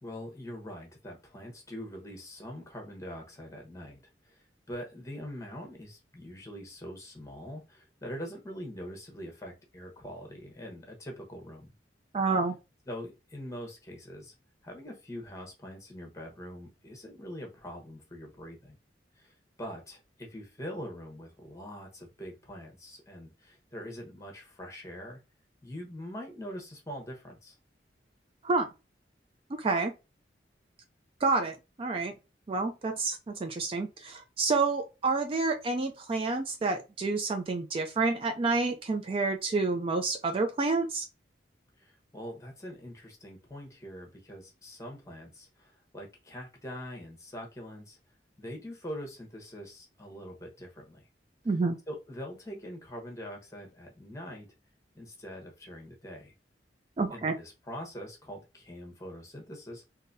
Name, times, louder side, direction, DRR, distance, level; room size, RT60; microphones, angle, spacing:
voice 1, 0.0-11.7 12.9-14.3 14.6-18.7 19.2-25.2 25.6-27.6 41.8-48.0 48.4-51.0 51.9-54.5 54.9-56.3 57.1-59.8, equal, 20° left, 1.0 m, -43 dB
voice 2, 12.1-12.5 28.4-28.7 29.5-29.9 31.2-32.1 32.5-41.1 51.5-51.8 57.0-57.3, right 3 dB, 30° right, 0.4 m, -29 dB
3.8 x 2.7 x 2.6 m
head